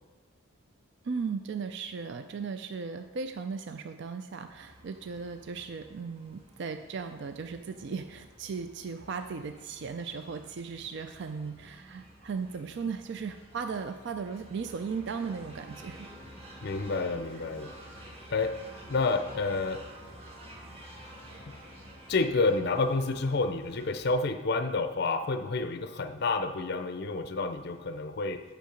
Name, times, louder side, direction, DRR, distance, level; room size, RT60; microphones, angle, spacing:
voice 1, 1.0-16.1, right 5 dB, 55° right, 7 dB, 0.4 m, -37 dB
sound 1, 4.5-24.1, right 1 dB, 25° right, 1.5 m, -50 dB
voice 2, 16.6-17.7 18.3-18.6 18.9-19.8 22.1-28.4, left 3 dB, 50° left, 8 dB, 0.5 m, -29 dB
8.4 x 6.2 x 5.1 m, 1.4 s
head